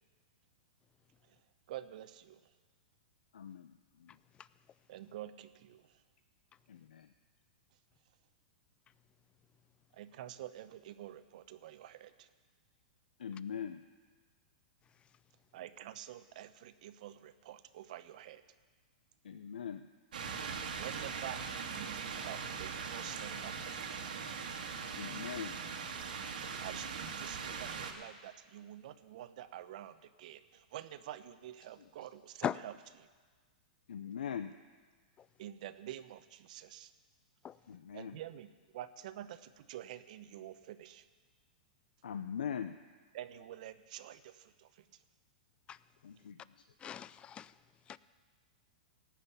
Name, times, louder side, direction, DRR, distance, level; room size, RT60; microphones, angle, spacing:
voice 1, 1.7-2.4 4.9-6.0 9.9-12.3 15.5-18.4 20.7-21.4 21.7-24.1 26.6-33.1 35.4-36.9 37.7-41.1 43.1-45.0, right 12 dB, 60° right, 12 dB, 0.8 m, -48 dB
voice 2, 3.3-4.2 6.7-7.1 13.2-13.8 19.2-19.9 24.9-25.6 31.8-31.9 33.9-34.5 37.7-38.2 42.0-42.8 46.0-46.6, left 8 dB, 80° left, 9 dB, 0.5 m, -42 dB
sound 1, 20.1-27.9, right 6 dB, 80° right, 1.6 m, -41 dB
voice 3, 46.8-47.5 47.9-48.0, left 9 dB, 20° left, 18 dB, 0.4 m, -37 dB
17.5 x 6.0 x 8.3 m, 1.4 s
hypercardioid pair, 120°, 5 cm